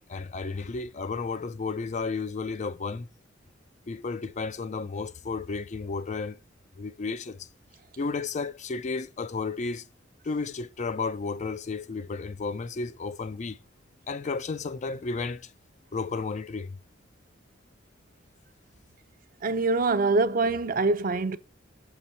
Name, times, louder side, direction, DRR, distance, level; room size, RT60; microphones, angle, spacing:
voice 1, 0.1-3.1 3.9-6.4 6.8-7.5 8.0-9.9 10.2-13.6 14.1-15.5 15.9-16.8, left 4 dB, 40° left, 0.4 m, -33 dB
voice 2, 19.4-21.4, right 3 dB, 45° right, 0.6 m, -24 dB
6.2 x 6.0 x 4.1 m
head